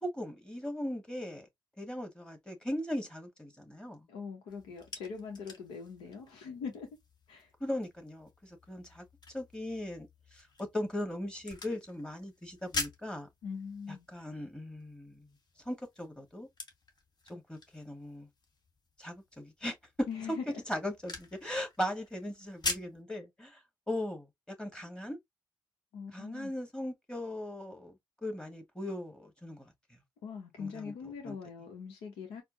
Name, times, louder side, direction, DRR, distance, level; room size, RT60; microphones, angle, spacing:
voice 1, 0.0-1.5 1.8-4.1 7.6-9.1 9.3-10.1 10.3-13.3 13.9-15.3 15.7-16.5 17.3-18.3 19.0-20.4 20.7-23.6 23.9-25.2 26.1-27.9 28.2-29.7 30.6-30.9 31.2-31.4, left 1 dB, 10° left, 1.8 m, -38 dB
voice 2, 4.1-6.9 7.3-7.5 13.4-14.1 20.1-20.6 25.9-26.5 30.2-32.4, left 6 dB, 80° left, 0.9 m, -42 dB
sound 1, 4.5-23.0, left 3 dB, 45° left, 1.3 m, -45 dB
4.3 x 2.2 x 2.6 m
hypercardioid pair, 45°, 10 cm